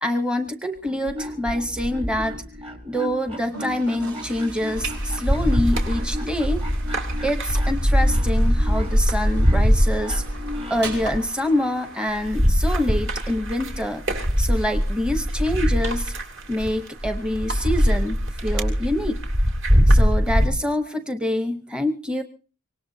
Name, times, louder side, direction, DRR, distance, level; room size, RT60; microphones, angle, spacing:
voice 1, 0.0-2.4 2.8-6.6 7.2-10.2 10.7-16.1 16.5-19.2 19.9-22.2, left 1 dB, 5° right, 7 dB, 0.8 m, -26 dB
sound 1, 0.8-11.0, left 1 dB, 25° right, 1.3 m, -36 dB
Toilet flush, 3.2-20.3, right 3 dB, 75° right, 5.3 m, -45 dB
sound 2, 4.8-20.5, equal, 55° right, 2.7 m, -22 dB
25.0 x 18.5 x 2.7 m, 0.37 s
head